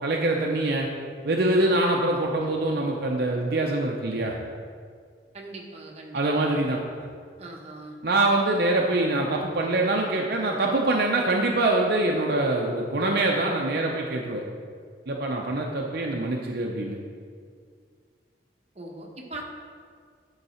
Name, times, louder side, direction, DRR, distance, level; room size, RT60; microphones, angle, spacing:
voice 1, 0.0-0.9 1.2-4.3 6.1-6.8 8.0-14.4 15.1-17.0, right 2 dB, 60° right, 0 dB, 0.6 m, -24 dB
voice 2, 5.3-6.2 7.4-8.0 18.7-19.4, right 2 dB, 40° right, 0 dB, 0.9 m, -40 dB
8.1 x 4.0 x 5.6 m, 2.1 s
head